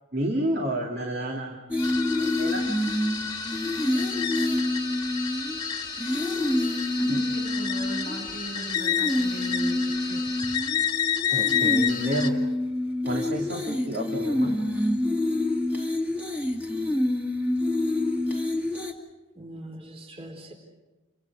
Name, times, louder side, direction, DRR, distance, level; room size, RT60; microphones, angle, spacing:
voice 1, 0.1-1.6 2.2-2.7 7.1-7.2 11.3-12.3 13.0-14.6, right 1 dB, 45° right, 2.6 m, -30 dB
sound 1, 1.7-8.4 8.7-18.9, left 1 dB, 5° right, 2.2 m, -27 dB
sound 2, 1.8-12.3, left 8 dB, 20° left, 2.0 m, -30 dB
voice 2, 6.7-10.5, right 2 dB, 75° right, 6.6 m, -39 dB
voice 3, 19.4-20.5, right 1 dB, 30° right, 4.0 m, -42 dB
29.5 x 24.5 x 4.8 m
head